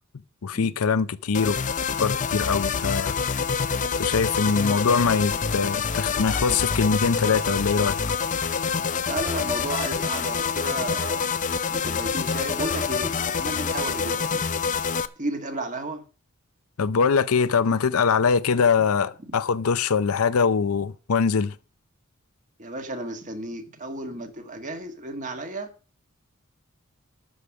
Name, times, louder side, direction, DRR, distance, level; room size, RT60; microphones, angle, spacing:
voice 1, 0.4-1.6 2.0-3.1 4.0-8.0 16.8-21.5, left 5 dB, 90° left, 0.6 m, -23 dB
sound 1, 1.3-15.1, left 6 dB, 35° left, 0.6 m, -26 dB
voice 2, 9.0-11.3 11.7-14.4 15.2-16.0 19.3-19.4 22.6-25.7, right 2 dB, 35° right, 1.6 m, -33 dB
12.5 x 5.0 x 7.1 m
head